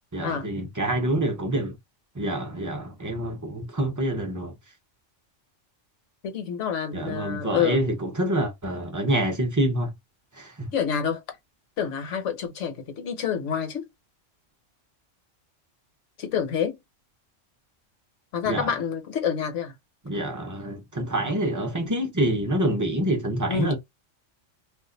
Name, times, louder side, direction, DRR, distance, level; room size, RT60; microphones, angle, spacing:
voice 1, 0.1-1.8 2.1-4.5 6.9-9.9 10.4-10.7 18.5-18.7 20.0-23.8, right 1 dB, 20° right, 0.6 m, -26 dB
voice 2, 6.2-7.8 10.7-11.2 11.8-13.9 16.2-16.8 18.3-19.7 23.5-23.7, left 7 dB, 70° left, 1.2 m, -28 dB
2.5 x 2.4 x 3.8 m
omnidirectional pair, 1.3 m